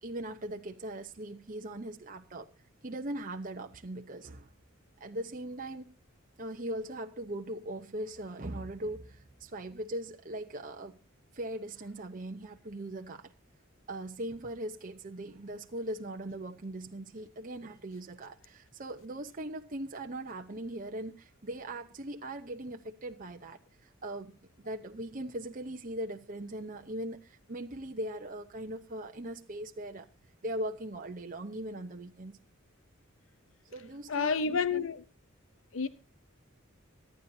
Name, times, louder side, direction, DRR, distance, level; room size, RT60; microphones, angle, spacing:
voice 1, 0.0-2.5 2.8-4.5 5.0-5.9 6.4-11.0 11.3-13.3 13.9-30.1 30.4-32.3 33.7-34.9, right 1 dB, 40° right, 0.9 m, -40 dB
voice 2, 34.1-35.0 35.7-35.9, left 5 dB, 70° left, 0.7 m, -29 dB
24.5 x 10.5 x 2.8 m
head